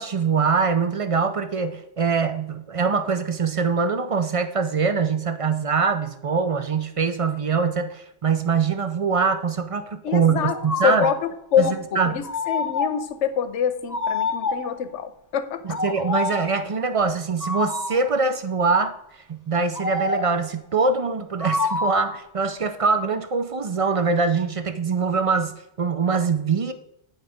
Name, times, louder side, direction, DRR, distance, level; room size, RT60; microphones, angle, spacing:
voice 1, 0.0-11.1 11.6-12.2 15.6-18.9 19.3-26.7, right 5 dB, 50° right, 9 dB, 0.4 m, -23 dB
voice 2, 10.0-11.2 11.5-15.8, left 8 dB, 85° left, 12 dB, 1.0 m, -25 dB
sound 1, 10.4-11.3 12.2-13.1 13.9-14.8 15.7-16.5 17.4-18.1 19.7-20.5 21.4-22.2, left 3 dB, 20° left, 0.7 m, -27 dB
9.8 x 4.0 x 5.0 m, 0.78 s
omnidirectional pair, 1.2 m